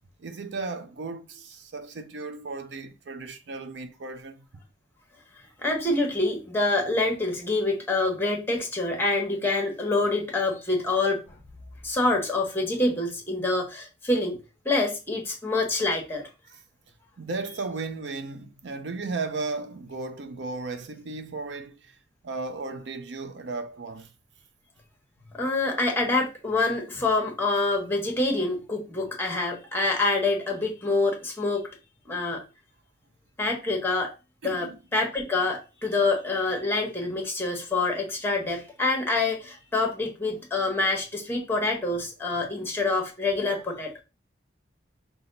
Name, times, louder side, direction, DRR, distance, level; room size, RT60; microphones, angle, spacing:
voice 1, 0.2-4.5 17.2-21.9 22.2-24.1 34.4-34.8, right 3 dB, 70° right, 0.5 m, -35 dB
voice 2, 5.6-11.4 11.8-14.4 14.6-16.3 25.3-31.7 32.1-32.4 33.4-34.1 34.4-44.0, left 2 dB, 10° left, 1.0 m, -26 dB
5.8 x 2.3 x 3.9 m
head